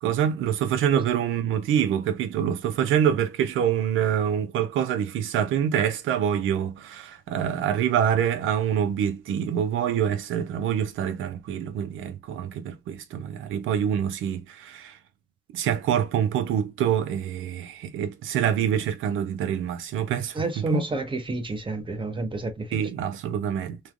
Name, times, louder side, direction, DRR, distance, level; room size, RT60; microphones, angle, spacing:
voice 1, 0.0-15.0 15.5-20.8 22.7-23.8, right 9 dB, 85° right, 0.6 m, -26 dB
voice 2, 20.3-22.8, right 2 dB, 25° right, 0.9 m, -29 dB
3.2 x 2.3 x 2.4 m
cardioid pair, 90°, 20 cm